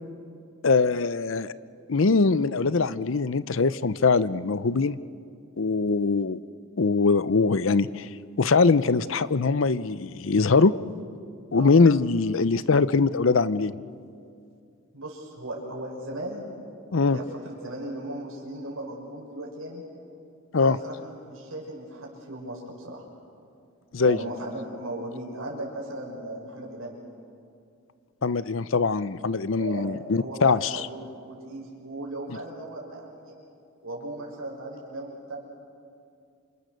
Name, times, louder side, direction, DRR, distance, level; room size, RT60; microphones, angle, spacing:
voice 1, 0.6-1.5 1.9-5.0 5.6-6.4 6.8-8.1 8.4-10.8 11.5-13.7 16.9-17.2 20.5-20.8 23.9-24.2 28.2-30.7, left 4 dB, 65° left, 16 dB, 0.6 m, -22 dB
voice 2, 14.9-16.4 17.0-19.8 20.6-23.0 24.0-27.0 29.5-33.4 33.8-35.4, right 1 dB, 90° right, -2 dB, 6.0 m, -37 dB
28.0 x 27.5 x 6.6 m, 2.4 s
head